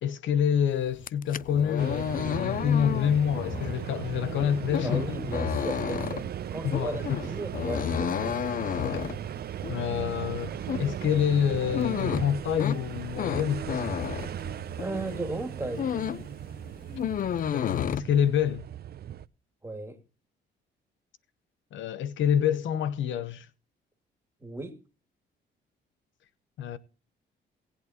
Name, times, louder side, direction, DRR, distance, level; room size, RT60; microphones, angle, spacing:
voice 1, 0.0-5.2 6.6-7.2 8.8-9.1 9.7-13.9 17.5-18.7 21.7-23.5 26.6-26.8, left 8 dB, 75° left, 0.9 m, -27 dB
sound 1, 0.9-15.0 15.4-16.3 16.6-18.0, left 9 dB, 45° left, 0.4 m, -32 dB
sound 2, 1.8-19.3, right 10 dB, 50° right, 0.6 m, -37 dB
voice 2, 4.8-8.3 14.8-15.9 19.6-20.0 24.4-24.8, right 2 dB, 10° right, 2.4 m, -35 dB
18.5 x 8.5 x 2.9 m
cardioid pair, 90°, 20 cm